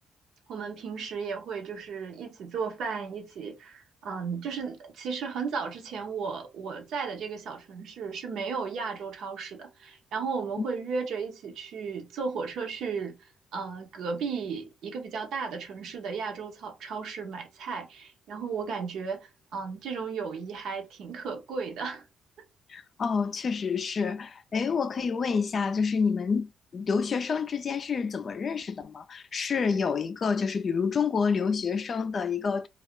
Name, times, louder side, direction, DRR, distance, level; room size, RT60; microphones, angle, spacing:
voice 1, 0.5-22.0, right 5 dB, 75° right, 0.7 m, -35 dB
voice 2, 22.7-32.7, left 5 dB, 45° left, 0.3 m, -28 dB
2.3 x 2.2 x 3.6 m
cardioid pair, 90°, 0 cm